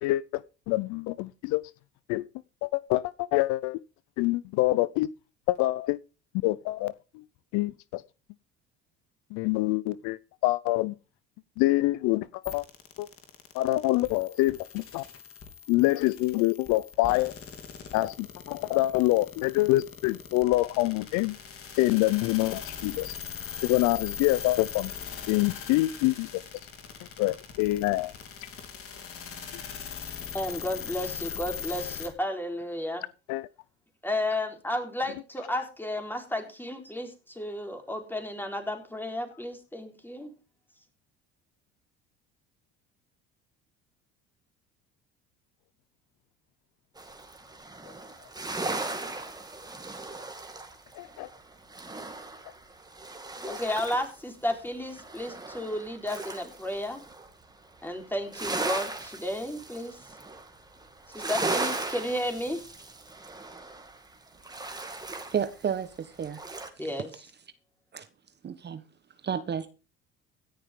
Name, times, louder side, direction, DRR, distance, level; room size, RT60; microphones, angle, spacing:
voice 1, 0.0-1.7 2.1-2.3 2.6-3.8 4.2-5.1 5.5-6.0 6.4-7.2 7.5-8.0 9.3-10.9 11.6-12.6 13.0-13.1 13.5-15.0 15.7-17.3 17.9-21.4 21.8-23.2 23.6-24.9 25.3-26.4 27.2-28.1 33.3-33.5 51.0-51.3 53.5-53.6, left 18 dB, 65° left, 0.6 m, -26 dB
sound 1, 12.4-32.1, left 7 dB, 45° left, 3.4 m, -40 dB
voice 2, 30.3-33.0 34.0-40.3 53.5-57.0 57.8-60.0 61.1-62.6 66.8-67.1, left 1 dB, 5° left, 4.1 m, -33 dB
sound 2, 47.0-54.2 54.5-57.3 57.6-66.7, right 2 dB, 15° right, 2.5 m, -37 dB
voice 3, 65.3-66.4 66.8-66.9 67.9-68.1 68.4-68.8 69.2-69.7, right 7 dB, 35° right, 1.2 m, -31 dB
16.5 x 10.5 x 3.7 m
supercardioid pair, 80°, 31 cm